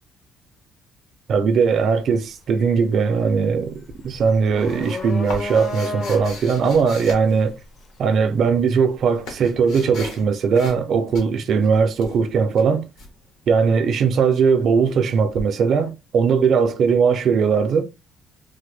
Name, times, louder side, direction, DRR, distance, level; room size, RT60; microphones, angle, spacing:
voice 1, 1.3-7.5 8.0-12.9 13.5-17.8, right 5 dB, 45° right, 0.4 m, -19 dB
sound 1, 1.5-1.7 2.1-9.1, left 2 dB, 30° left, 0.5 m, -33 dB
sound 2, 4.1-8.0 8.7-10.3 10.5-10.9 11.1-13.1 15.3-15.4, left 2 dB, 75° left, 1.1 m, -38 dB
3.3 x 2.1 x 3.2 m
cardioid pair, 175°, 0 cm